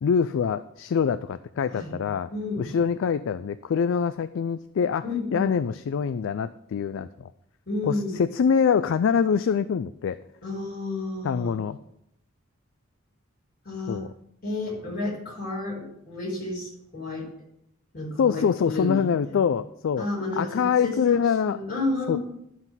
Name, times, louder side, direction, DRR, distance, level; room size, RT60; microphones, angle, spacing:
voice 1, 0.0-2.3 2.6-5.0 5.3-7.3 7.8-10.2 11.2-11.8 13.9-14.1 18.2-20.1 20.4-21.6 22.1-22.2, left 6 dB, 65° left, 13 dB, 0.3 m, -24 dB
voice 2, 2.3-2.7 5.0-5.5 7.7-8.2 10.4-11.6 13.6-14.0 14.4-17.3 17.9-19.4 20.0-21.2 21.5-22.2, left 2 dB, 45° left, -4 dB, 4.6 m, -31 dB
11.0 x 4.0 x 7.2 m, 0.76 s
head